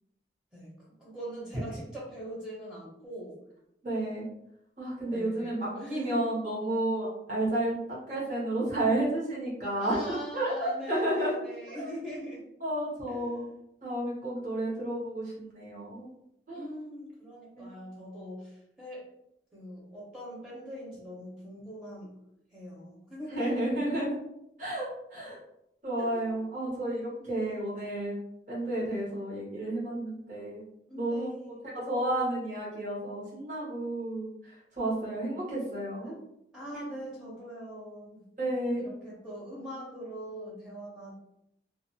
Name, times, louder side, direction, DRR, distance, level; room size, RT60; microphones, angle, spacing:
voice 1, 1.0-3.4 5.1-6.3 9.8-12.4 13.1-13.5 16.5-19.0 19.5-22.1 22.5-23.8 26.0-26.3 27.2-27.5 30.9-31.6 36.5-38.2 38.7-41.1, equal, 5° right, -7 dB, 0.7 m, -42 dB
voice 2, 3.8-4.3 4.8-7.7 8.1-11.4 11.7-11.9 12.6-13.5 13.8-16.1 16.5-16.7 17.6-17.7 23.3-24.2 24.6-25.4 25.8-28.2 28.5-30.6 30.9-31.3 31.7-36.1 36.7-36.8 38.4-38.9, right 1 dB, 45° right, -6 dB, 1.0 m, -31 dB
2.4 x 2.3 x 2.6 m, 0.79 s
head